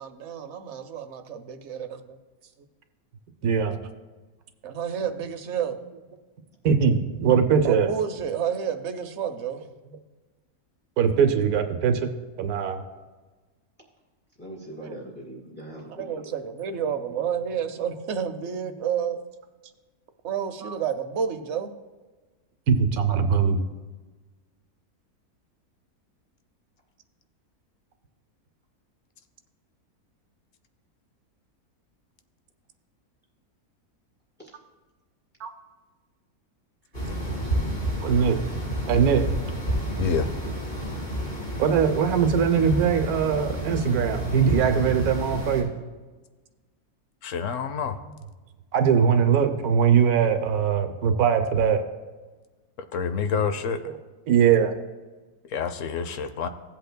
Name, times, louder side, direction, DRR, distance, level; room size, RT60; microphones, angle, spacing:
voice 1, 0.0-2.2 4.6-5.8 7.6-9.6 14.8-15.0 15.9-19.2 20.2-21.7, right 8 dB, 55° right, 8 dB, 0.9 m, -30 dB
voice 2, 3.4-3.8 6.6-7.9 11.0-12.1 12.4-12.8 20.6-20.7 22.7-23.6 35.4-35.5 38.0-38.4 38.9-39.3 41.6-45.7 48.7-51.8 53.4-53.5 54.3-54.7, right 7 dB, 80° right, 7 dB, 1.2 m, -21 dB
voice 3, 14.4-16.3 34.4-34.6, right 1 dB, 5° left, -2 dB, 2.5 m, -41 dB
sound 1, 36.9-45.6, equal, 40° left, 3.3 m, -30 dB
voice 4, 47.2-48.0 52.9-53.8 55.5-56.5, left 6 dB, 65° left, 9 dB, 1.0 m, -27 dB
16.5 x 7.9 x 2.2 m, 1.3 s
omnidirectional pair, 1.6 m